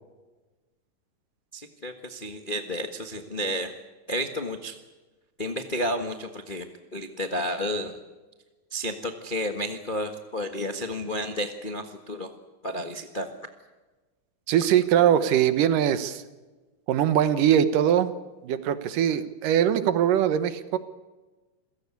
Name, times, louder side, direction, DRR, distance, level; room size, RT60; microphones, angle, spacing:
voice 1, 1.5-3.7 4.1-4.8 5.4-6.7 6.9-8.0 8.7-12.3 12.6-13.3, equal, 70° left, 5 dB, 0.4 m, -31 dB
voice 2, 14.5-16.2 16.9-18.1 18.4-20.8, right 10 dB, 80° right, 12 dB, 2.8 m, -22 dB
27.5 x 16.5 x 8.4 m, 1.2 s
omnidirectional pair, 3.7 m